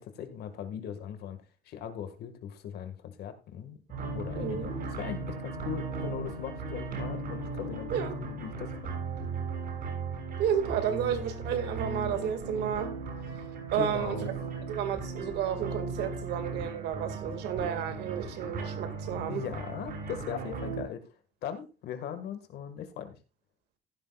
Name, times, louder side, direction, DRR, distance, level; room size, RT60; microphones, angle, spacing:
voice 1, 0.0-3.8 4.1-9.0 13.7-14.3 19.3-21.1 21.4-23.2, left 8 dB, 70° left, 1.9 m, -39 dB
sound 1, 3.9-20.8, right 3 dB, 60° right, 6.6 m, -37 dB
voice 2, 4.4-4.8 7.9-8.2 10.4-13.0 13.7-14.3 14.7-19.4, right 9 dB, 80° right, 2.2 m, -32 dB
15.0 x 11.0 x 2.4 m
cardioid pair, 110°, 17 cm